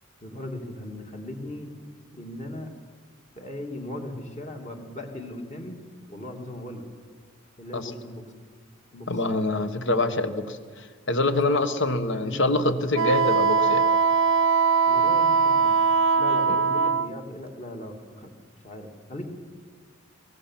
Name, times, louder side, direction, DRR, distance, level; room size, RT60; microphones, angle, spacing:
voice 1, 0.2-1.7 2.1-2.7 3.4-5.8 6.1-6.9 7.6-8.2 8.9-9.2 11.3-11.9 12.1-12.6 14.9-15.7 16.2-18.3 18.6-19.3, left 1 dB, 35° left, 3 dB, 2.6 m, -38 dB
voice 2, 9.1-13.8, left 2 dB, 55° left, 11 dB, 1.4 m, -25 dB
Wind instrument woodwind instrument, 12.9-17.1, right 5 dB, 65° right, 0.6 m, -21 dB
23.0 x 17.5 x 7.5 m, 1.6 s
head